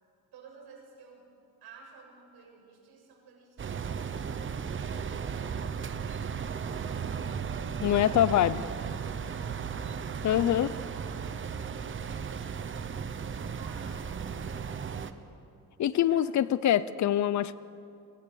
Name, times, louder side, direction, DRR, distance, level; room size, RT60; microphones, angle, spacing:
voice 1, 0.3-1.2 1.6-7.4 8.1-10.0 10.6-15.4 15.9-16.5, right 5 dB, 80° right, 0 dB, 7.2 m, -54 dB
sound 1, 3.6-15.1, right 6 dB, 30° right, 1.0 m, -35 dB
voice 2, 7.8-8.6 10.2-10.7 15.8-17.5, left 11 dB, 50° left, 17 dB, 0.7 m, -24 dB
29.5 x 22.5 x 7.1 m, 2.6 s
cardioid pair, 165°, 38 cm